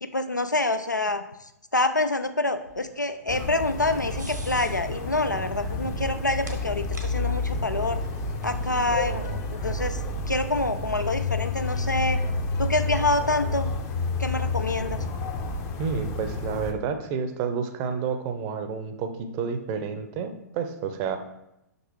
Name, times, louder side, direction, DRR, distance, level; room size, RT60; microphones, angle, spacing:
voice 1, 0.0-1.2 1.7-8.0 8.4-10.0 10.3-12.2 12.6-13.7 14.2-15.0, left 2 dB, 90° left, 10 dB, 0.4 m, -26 dB
sound 1, 2.2-10.7, right 1 dB, 80° right, 1.1 m, -47 dB
sound 2, 3.3-16.7, left 3 dB, 25° left, 0.6 m, -30 dB
voice 2, 15.8-21.2, right 6 dB, 30° right, 7 dB, 0.6 m, -30 dB
5.9 x 5.3 x 3.1 m, 0.86 s
figure-of-eight pair, 110°, 9 cm